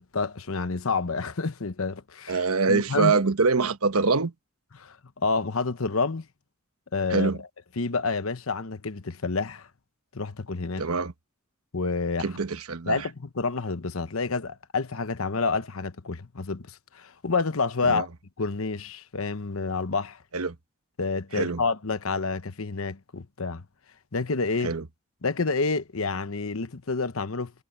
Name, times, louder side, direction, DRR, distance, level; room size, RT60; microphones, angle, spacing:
voice 1, 0.0-3.2 4.7-6.3 6.9-7.3 7.8-9.7 10.1-10.8 11.7-12.4 12.9-18.1 18.4-20.2 21.0-23.6 24.1-24.7 25.2-27.5, left 4 dB, 75° left, 1.0 m, -29 dB
voice 2, 2.3-4.3 7.1-7.4 10.8-11.1 12.2-13.0 17.8-18.0 20.3-20.5 21.3-21.6 24.6-24.8, right 4 dB, 90° right, 1.1 m, -24 dB
head